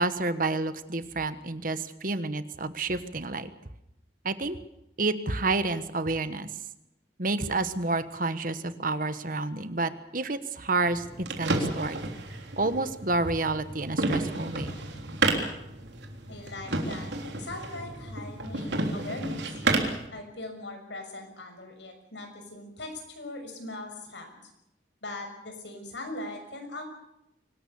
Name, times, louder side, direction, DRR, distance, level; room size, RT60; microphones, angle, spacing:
voice 1, 0.0-3.5 4.2-4.6 5.0-6.5 7.2-11.0 11.4-12.0 12.6-14.7, right 3 dB, 50° right, 12 dB, 1.3 m, -29 dB
sound 1, 10.8-20.1, right 2 dB, 75° right, 3.5 m, -31 dB
voice 2, 16.3-17.1 17.4-19.4 20.1-24.3 25.0-26.8, left 2 dB, 80° left, 4 dB, 6.5 m, -40 dB
24.0 x 19.0 x 7.1 m, 0.86 s
head